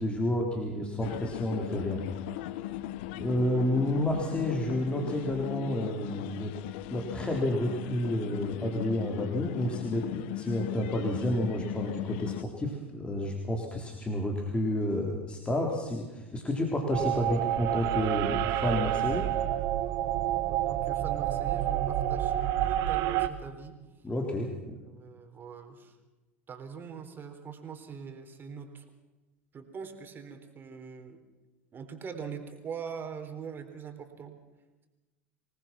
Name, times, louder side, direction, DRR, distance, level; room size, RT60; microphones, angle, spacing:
voice 1, 0.0-2.0 3.1-6.5 6.9-19.2 24.0-24.5, left 1 dB, 15° left, 0 dB, 3.7 m, -30 dB
sound 1, 1.0-12.4, left 15 dB, 65° left, 0.9 m, -38 dB
sound 2, 16.9-23.3, right 13 dB, 55° right, 1.5 m, -29 dB
voice 2, 20.5-22.3 22.6-23.8 24.7-26.0 26.5-28.8 29.5-31.2 31.7-34.4, right 6 dB, 30° right, 6 dB, 3.9 m, -42 dB
26.5 x 19.5 x 6.0 m, 1.1 s
hypercardioid pair, 85°, 7 cm